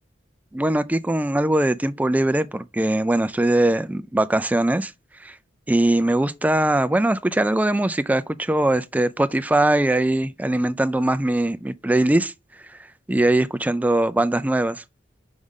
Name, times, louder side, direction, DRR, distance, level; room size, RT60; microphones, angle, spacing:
voice 1, 0.5-4.9 5.2-5.3 5.7-12.3 13.1-14.8, right 1 dB, 10° right, 0.4 m, -21 dB
5.3 x 4.8 x 3.6 m
head